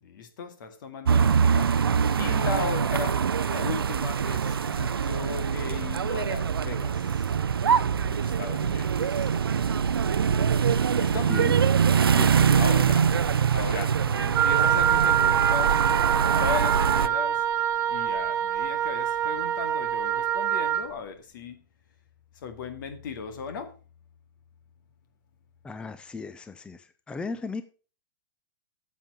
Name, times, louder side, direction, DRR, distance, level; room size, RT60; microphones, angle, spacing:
voice 1, 0.0-7.3 8.0-9.4 11.0-11.3 12.6-13.1 13.5-15.9 16.4-17.5 17.9-21.6 22.4-23.7, left 6 dB, 60° left, 9 dB, 2.1 m, -37 dB
sound 1, 1.0-17.1, right 7 dB, 90° right, 0.5 m, -24 dB
voice 2, 11.3-11.6 12.1-12.6 25.6-27.6, left 4 dB, 10° left, 12 dB, 0.5 m, -36 dB
Wind instrument woodwind instrument, 14.3-20.9, right 9 dB, 30° right, 1.2 m, -25 dB
9.2 x 7.4 x 5.3 m, 0.37 s
hypercardioid pair, 120°, 12 cm